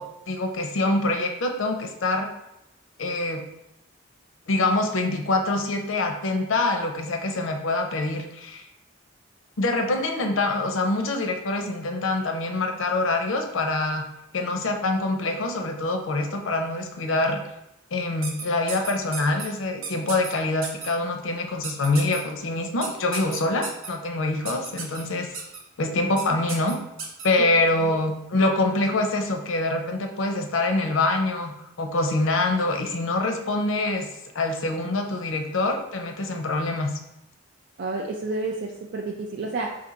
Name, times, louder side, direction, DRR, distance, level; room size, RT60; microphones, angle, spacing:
voice 1, 0.0-2.3 3.0-3.4 4.5-8.6 9.6-14.0 14.3-17.4 17.9-25.3 25.8-26.8 27.2-31.5 31.8-34.1 34.3-37.0, left 2 dB, 80° left, 4 dB, 0.6 m, -25 dB
sound 1, 18.2-19.5 19.8-20.3 20.6-20.9 21.6-22.2 22.8-23.9 24.4-25.0 25.3-25.6 26.2-26.3 26.5-27.3, right 4 dB, 85° right, 0.8 m, -34 dB
voice 2, 37.8-39.8, right 3 dB, 60° right, 0 dB, 0.4 m, -30 dB
4.3 x 2.6 x 3.8 m, 0.85 s
head